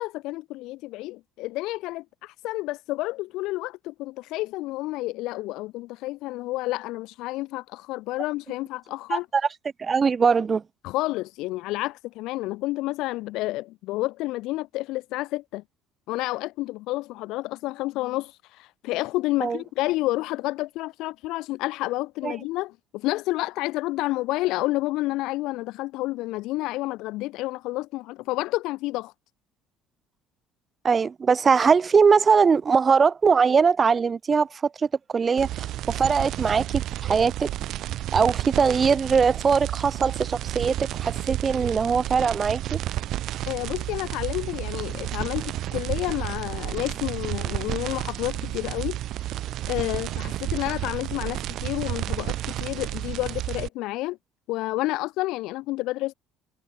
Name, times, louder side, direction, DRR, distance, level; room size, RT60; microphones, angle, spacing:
voice 1, 0.0-9.3 10.8-15.6 16.1-29.1 43.5-49.0 49.7-54.2 54.5-56.1, left 19 dB, 60° left, 0.5 m, -30 dB
voice 2, 9.1-9.4 9.8-10.6 19.4-19.6 22.2-22.3 30.8-37.5 38.1-42.8, right 5 dB, 30° right, 0.6 m, -21 dB
sound 1, 35.4-53.7, right 13 dB, 50° right, 1.0 m, -31 dB
figure-of-eight pair, 55°, 0 cm